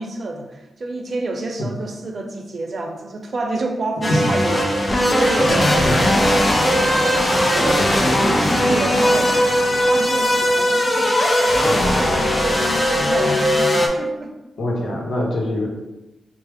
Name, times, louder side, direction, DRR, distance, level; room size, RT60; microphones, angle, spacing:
voice 1, 0.0-9.4 9.9-14.3, right 2 dB, 55° right, 3 dB, 0.6 m, -29 dB
sound 1, 4.0-13.9, equal, 30° left, 0.6 m, -18 dB
voice 2, 14.6-15.7, left 1 dB, 75° left, -1 dB, 0.9 m, -23 dB
4.5 x 2.0 x 3.5 m, 1.0 s
cardioid pair, 60°, 0 cm